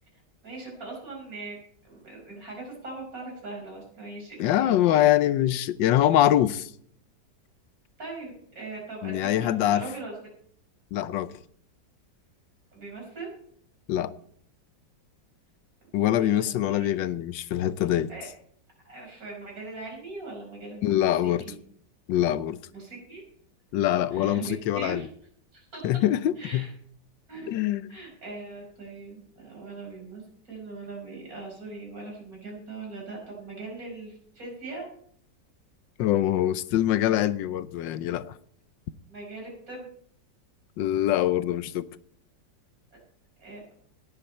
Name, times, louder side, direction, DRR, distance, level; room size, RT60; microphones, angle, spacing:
voice 1, 0.4-1.6 1.8-4.7 8.0-10.1 12.7-13.3 16.1-16.9 18.1-18.3 18.8-21.6 22.7-23.2 24.1-25.1 25.5-25.8 26.4-26.7 27.3-27.6 27.9-34.9 39.1-39.9 43.4-43.6, right 3 dB, 50° right, 5.6 m, -40 dB
voice 2, 4.4-6.7 9.0-9.8 10.9-11.3 13.9-14.1 15.9-18.1 20.8-21.4 22.1-22.6 23.7-25.0 25.8-26.7 27.5-27.8 36.0-38.3 40.8-41.9, left 12 dB, 80° left, 1.4 m, -24 dB
18.0 x 8.9 x 4.3 m
omnidirectional pair, 2.0 m